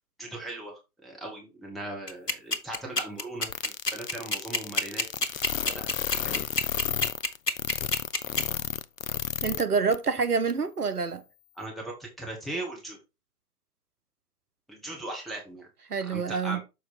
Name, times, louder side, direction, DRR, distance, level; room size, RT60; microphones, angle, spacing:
voice 1, 0.2-5.1 5.6-5.8 6.2-6.5 11.6-13.0 14.7-15.7 16.0-16.6, right 2 dB, ahead, 1.2 m, -38 dB
sound 1, 2.1-8.4, left 2 dB, 85° left, 1.2 m, -26 dB
sound 2, 3.5-9.6 9.9-10.0 10.5-10.6, left 9 dB, 60° left, 0.6 m, -32 dB
voice 2, 9.4-11.2 15.9-16.6, right 5 dB, 75° right, 1.1 m, -27 dB
6.7 x 4.5 x 4.1 m
figure-of-eight pair, 125°, 46 cm